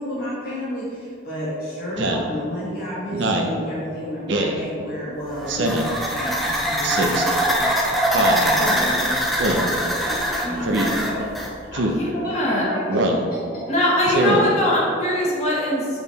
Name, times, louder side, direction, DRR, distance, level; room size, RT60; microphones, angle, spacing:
voice 1, 0.0-11.3 11.7-11.8 12.1-13.4, equal, 55° left, -8 dB, 1.3 m, -31 dB
Speech synthesizer, 2.0-2.3 3.1-3.5 4.3-4.6 5.5-5.9 6.8-7.2 8.1-8.4 9.4-9.7 10.6-10.9 11.7-12.0 12.9-13.2 14.1-14.4, right 1 dB, 85° right, 0.7 m, -22 dB
sound 1, 5.3-11.5, equal, ahead, 0.6 m, -23 dB
voice 2, 10.4-10.9 11.9-12.7 13.7-16.0, left 1 dB, 35° left, -6 dB, 1.6 m, -22 dB
7.9 x 3.6 x 4.1 m, 2.3 s
head